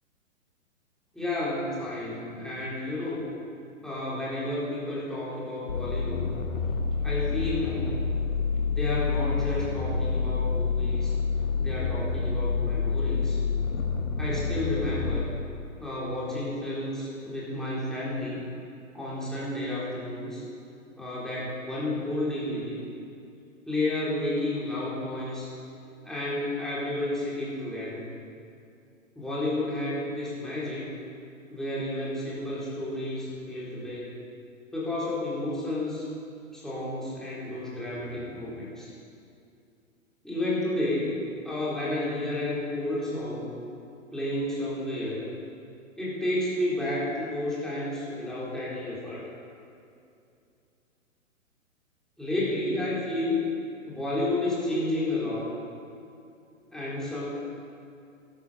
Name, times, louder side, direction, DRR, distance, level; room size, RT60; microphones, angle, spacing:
voice 1, 1.1-3.3 3.8-6.3 7.0-8.0 8.7-11.1 11.6-13.4 14.2-15.3 15.8-18.4 18.9-20.4 21.0-22.8 23.7-25.5 26.0-28.0 29.2-30.9 31.5-34.1 34.7-36.0 36.5-38.9 40.2-41.2 41.4-43.5 44.1-45.2 46.0-49.3 52.2-53.4 53.9-55.5 56.7-57.3, left 1 dB, ahead, -9 dB, 4.0 m, -31 dB
sound 1, 5.7-15.2, left 5 dB, 70° left, 1.6 m, -28 dB
14.5 x 12.0 x 5.2 m, 2.5 s
figure-of-eight pair, 120°, 41 cm